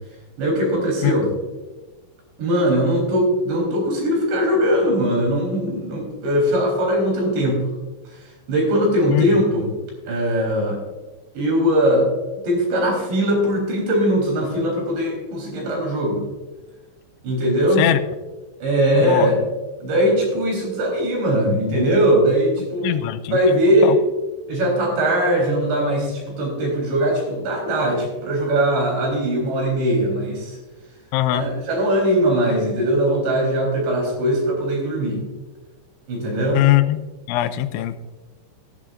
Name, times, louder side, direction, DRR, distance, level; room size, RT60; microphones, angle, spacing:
voice 1, 0.4-1.3 2.4-7.7 8.1-9.7 10.1-10.8 11.3-12.1 12.4-16.2 17.2-17.9 18.6-19.4 19.8-24.0 24.5-30.6 31.3-35.2 36.1-36.6, equal, 65° right, -1 dB, 5.9 m, -20 dB
voice 2, 22.8-23.4 23.8-23.9 31.1-31.5 36.5-37.0 37.3-38.0, left 15 dB, 90° left, 10 dB, 3.0 m, -20 dB
18.5 x 10.5 x 2.5 m, 1.2 s
omnidirectional pair, 5.4 m